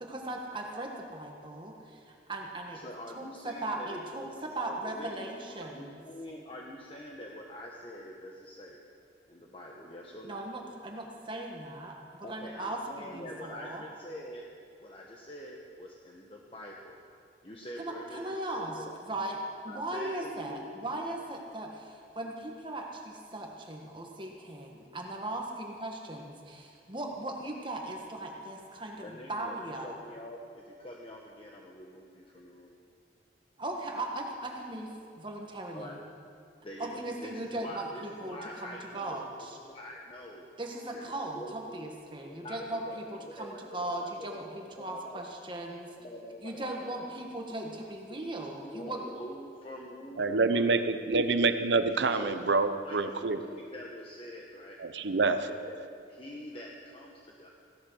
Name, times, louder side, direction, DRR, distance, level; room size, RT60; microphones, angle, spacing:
voice 1, 0.0-2.8 3.1-6.0 10.2-13.8 17.8-19.4 19.6-30.0 33.6-36.0 36.8-39.6 40.6-45.9 46.4-49.0, right 1 dB, 30° right, 0 dB, 1.5 m, -38 dB
voice 2, 2.7-8.8 9.3-10.4 12.2-14.4 14.8-17.0 17.4-19.0 19.7-20.7 29.0-32.8 35.7-36.0 36.6-40.5 40.9-42.0 42.2-45.2 46.0-47.0 48.1-51.4 51.9-54.8 55.4-57.5, equal, 30° left, -2 dB, 1.2 m, -45 dB
voice 3, 50.2-53.4 54.8-55.5, right 3 dB, 80° right, 10 dB, 0.8 m, -27 dB
16.5 x 12.0 x 6.3 m, 2.4 s
head